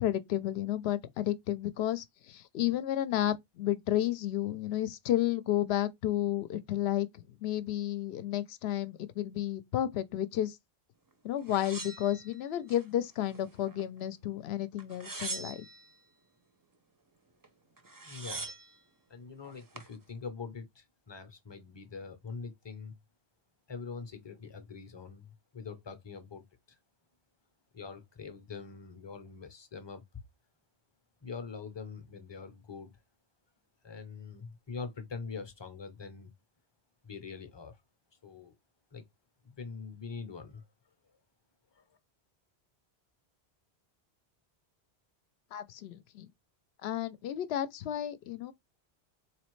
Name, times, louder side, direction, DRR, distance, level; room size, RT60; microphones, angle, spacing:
voice 1, 0.0-10.6 11.2-15.7 45.5-46.3 46.8-48.5, left 12 dB, 75° left, 0.8 m, -32 dB
sound 1, 11.5-12.8 13.3-14.1 14.8-15.9 17.4-17.5 17.8-18.7 19.4-19.9, right 3 dB, 25° right, 0.5 m, -42 dB
voice 2, 18.0-18.5 19.1-23.0 23.7-26.8 27.7-30.0 31.2-32.9 33.8-36.3 37.0-37.8 38.2-38.6 38.9-39.0 39.4-40.6 41.7-42.0, left 5 dB, 30° left, 0.6 m, -44 dB
4.1 x 3.1 x 3.1 m
omnidirectional pair, 1.1 m